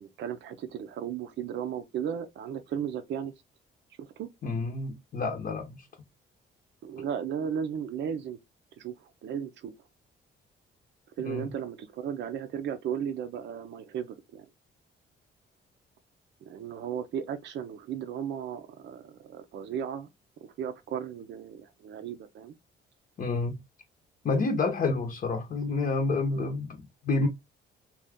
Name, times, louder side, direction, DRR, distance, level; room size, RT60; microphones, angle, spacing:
voice 1, 0.0-3.3 4.0-4.3 6.8-8.4 8.8-8.9 9.2-9.7 11.2-14.5 16.4-20.1 20.6-22.5 26.3-26.5, right 8 dB, 65° right, 0.5 m, -35 dB
voice 2, 4.4-5.9 11.2-11.5 23.2-23.6 24.2-27.3, left 3 dB, 45° left, 0.7 m, -29 dB
2.7 x 2.3 x 3.5 m
cardioid pair, 90°, 20 cm